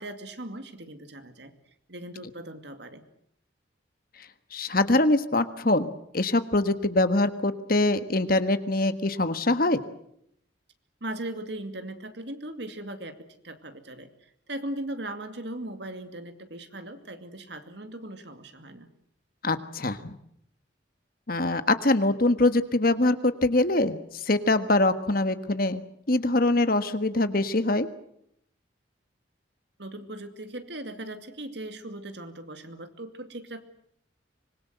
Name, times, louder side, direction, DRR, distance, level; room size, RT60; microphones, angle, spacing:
voice 1, 0.0-1.5 1.9-3.0 11.0-13.1 13.4-14.1 14.5-18.9 29.8-33.6, right 1 dB, 65° right, 8 dB, 2.5 m, -38 dB
voice 2, 4.5-9.8 19.4-20.2 21.3-25.8 26.1-27.9, left 2 dB, 50° left, 11 dB, 1.5 m, -24 dB
25.5 x 21.0 x 8.0 m, 0.71 s
head